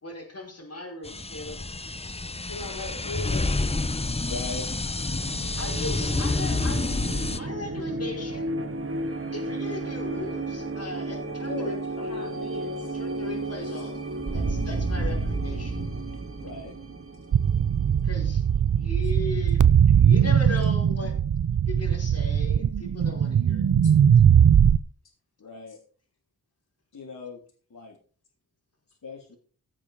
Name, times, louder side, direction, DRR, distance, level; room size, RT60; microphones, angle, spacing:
voice 1, 0.0-1.6 5.6-6.9 7.3-8.5 9.3-11.8 12.9-14.0 14.3-15.8 18.0-18.4 18.7-21.2 21.7-23.7, left 2 dB, 40° left, 1 dB, 4.9 m, -37 dB
sound 1, 1.0-7.4, left 3 dB, 15° left, 0.8 m, -28 dB
voice 2, 2.5-3.5 11.5-13.0 13.6-13.9 23.8-23.9, left 3 dB, 85° left, 0 dB, 5.1 m, -39 dB
voice 3, 4.3-4.7 14.5-14.6 16.4-16.7 25.4-25.8 26.9-27.4 27.7-27.9 29.0-29.4, left 3 dB, 60° left, -3 dB, 3.4 m, -39 dB
sound 2, 5.0-18.5, right 2 dB, 35° right, 1.7 m, -32 dB
sound 3, 17.3-24.8, right 8 dB, 55° right, 0.7 m, -20 dB
17.0 x 7.5 x 5.0 m, 0.42 s
cardioid pair, 70°, 36 cm